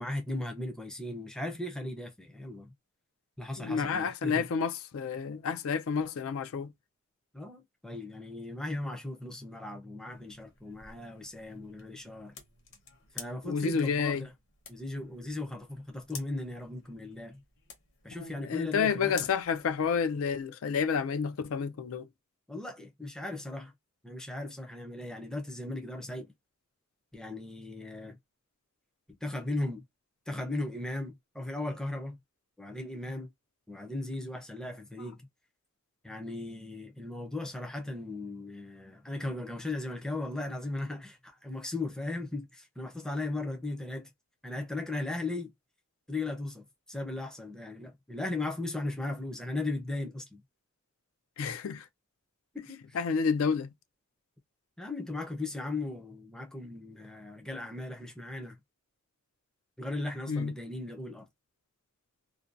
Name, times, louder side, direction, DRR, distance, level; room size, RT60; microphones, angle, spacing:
voice 1, 0.0-2.7 3.4-4.5 7.3-12.3 13.1-14.3 14.7-17.4 18.0-19.3 22.5-23.7 24.0-26.3 27.1-28.2 29.2-29.8 30.3-32.2 32.6-33.3 33.7-35.2 36.0-44.1 44.4-45.5 46.1-50.4 52.5-53.0 54.8-58.6 59.8-61.3, left 2 dB, 5° left, 0.5 m, -37 dB
voice 2, 3.6-6.7 13.4-14.3 18.1-22.1 51.4-51.9 52.9-53.7 60.3-60.5, left 6 dB, 70° left, 0.4 m, -30 dB
sound 1, 10.1-20.4, left 6 dB, 55° left, 0.9 m, -52 dB
2.5 x 2.2 x 2.4 m
head